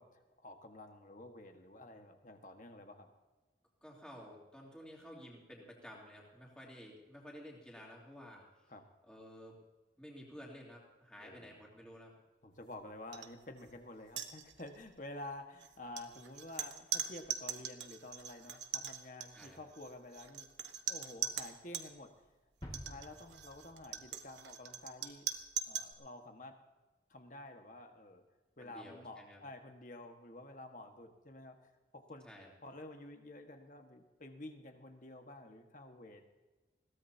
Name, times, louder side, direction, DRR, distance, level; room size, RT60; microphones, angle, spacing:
voice 1, 0.0-3.1 8.7-8.8 11.2-11.6 12.4-20.5 20.9-22.1 22.7-25.3 25.7-26.5 27.1-28.2 28.6-31.6 31.9-32.3 32.6-36.2, left 1 dB, 45° left, 5 dB, 1.7 m, -50 dB
voice 2, 3.8-8.7 9.0-9.6 10.0-12.1 19.3-19.6 28.6-29.4 32.2-32.5, equal, 5° left, -4 dB, 3.4 m, -53 dB
sound 1, 13.1-13.3 13.6-13.8 14.1-14.8 15.6-21.9 22.6-25.9, right 8 dB, 75° right, 1.3 m, -41 dB
sound 2, 22.6-24.7, equal, 25° left, 2.3 m, -51 dB
21.5 x 17.5 x 2.9 m, 1.2 s
head